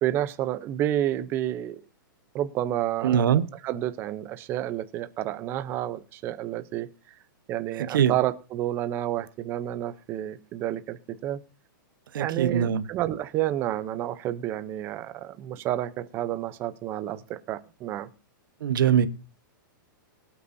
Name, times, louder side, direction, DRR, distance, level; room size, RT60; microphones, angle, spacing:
voice 1, 0.0-1.8 2.3-6.9 7.5-11.4 12.1-18.1, right 12 dB, 20° right, 0.7 m, -30 dB
voice 2, 3.0-3.5 7.8-8.1 12.1-12.8 18.6-19.1, right 8 dB, 75° right, 1.2 m, -22 dB
22.5 x 8.6 x 2.7 m
hypercardioid pair, 170°, 11 cm